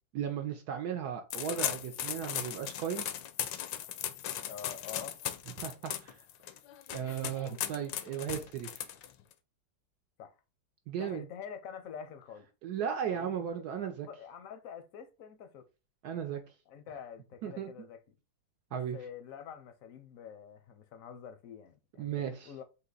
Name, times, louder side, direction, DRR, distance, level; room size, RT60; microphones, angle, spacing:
voice 1, 0.1-3.1 5.6-6.2 6.9-8.9 10.9-11.2 12.6-14.1 16.0-16.4 17.4-17.7 18.7-19.0 22.0-22.5, right 8 dB, 70° right, 1.0 m, -36 dB
sound 1, 1.3-9.3, left 11 dB, 85° left, 1.3 m, -38 dB
voice 2, 4.4-5.2 10.2-10.4 11.0-12.5 13.1-15.7 16.7-18.1 18.7-22.6, left 7 dB, 65° left, 0.8 m, -47 dB
4.0 x 2.8 x 3.8 m
omnidirectional pair, 2.0 m